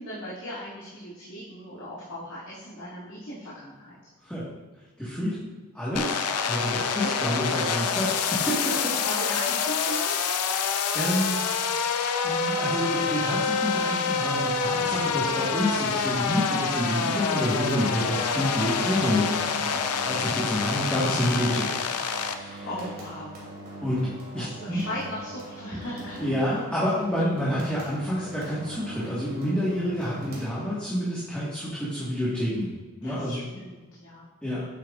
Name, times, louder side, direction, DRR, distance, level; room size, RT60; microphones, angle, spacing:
voice 1, 0.0-3.9 7.0-7.3 9.0-10.2 19.5-19.8 22.4-23.4 24.4-26.3 27.2-27.3 33.0-34.3, equal, 70° left, -10 dB, 2.0 m, -37 dB
voice 2, 5.0-5.4 5.7-8.9 10.5-11.4 12.2-21.8 22.3-22.7 23.8-24.8 26.2-32.7 33.0-33.4 34.4-34.6, equal, 5° left, -10 dB, 1.5 m, -28 dB
sound 1, 6.0-22.4, left 6 dB, 90° left, 0.6 m, -27 dB
sound 2, 14.6-31.0, right 1 dB, 45° right, 2.4 m, -42 dB
8.8 x 7.8 x 2.4 m, 1.3 s
head